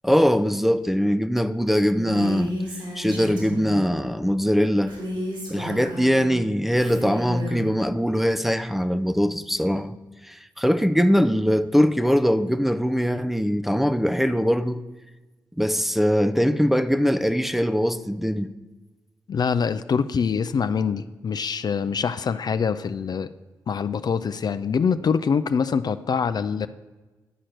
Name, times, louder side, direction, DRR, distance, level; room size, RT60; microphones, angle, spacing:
voice 1, 0.0-2.5 3.0-5.0 5.5-9.9 10.2-14.8 15.6-18.5, equal, 5° right, 0.5 m, -22 dB
Female speech woman speaking, 1.9-3.9 4.9-6.3 6.7-7.7, equal, 75° right, 3.3 m, -33 dB
voice 2, 19.3-23.3 23.7-26.7, left 6 dB, 55° left, 0.4 m, -24 dB
10.0 x 4.4 x 6.4 m
supercardioid pair, 45°, 8 cm